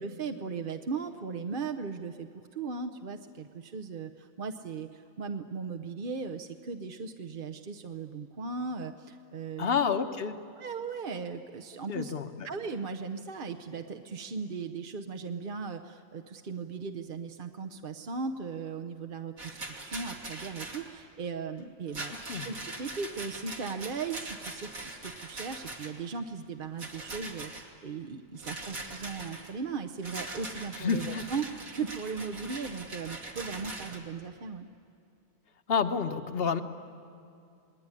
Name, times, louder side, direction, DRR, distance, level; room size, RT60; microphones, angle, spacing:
voice 1, 0.0-9.8 10.6-12.1 12.4-22.1 22.4-34.7, right 5 dB, 45° right, 6 dB, 0.9 m, -37 dB
voice 2, 9.6-10.4 11.9-12.5 22.3-22.5 30.8-31.2 35.7-36.6, left 6 dB, 45° left, 9 dB, 1.2 m, -29 dB
Rattle, 19.4-20.9 21.9-26.1 26.8-27.7 28.4-29.5 30.0-34.0, right 2 dB, 80° right, 2.9 m, -41 dB
27.5 x 20.5 x 9.8 m, 2.6 s
omnidirectional pair, 1.4 m